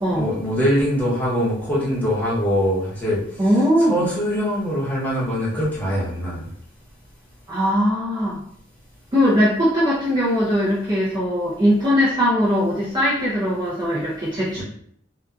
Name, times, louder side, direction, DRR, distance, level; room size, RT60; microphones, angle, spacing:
voice 1, 0.1-3.5 3.9-6.4 14.5-14.6, equal, 10° left, -8 dB, 0.9 m, -23 dB
voice 2, 3.4-3.9 7.5-8.4 9.1-14.6, equal, 20° right, -7 dB, 0.5 m, -20 dB
2.7 x 2.3 x 2.3 m, 0.67 s
head